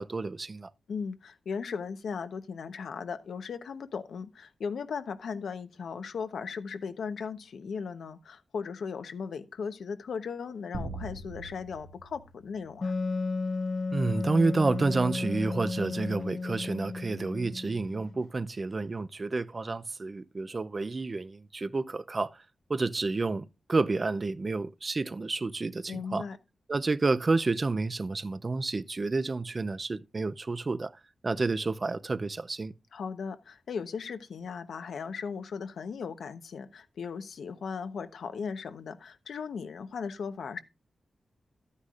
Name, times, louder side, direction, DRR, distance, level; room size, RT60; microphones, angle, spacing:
voice 1, 0.0-0.7 13.9-22.4 22.7-26.2 26.7-30.9 31.2-32.7, right 3 dB, 35° right, 0.5 m, -30 dB
voice 2, 0.9-12.9 25.9-26.4 32.9-40.6, left 6 dB, 85° left, 0.9 m, -37 dB
sound 1, 10.7-13.3, right 3 dB, 90° right, 1.7 m, -42 dB
Wind instrument woodwind instrument, 12.8-18.2, left 3 dB, 45° left, 0.5 m, -33 dB
13.0 x 9.7 x 2.5 m
wide cardioid pair, 85°, 0 cm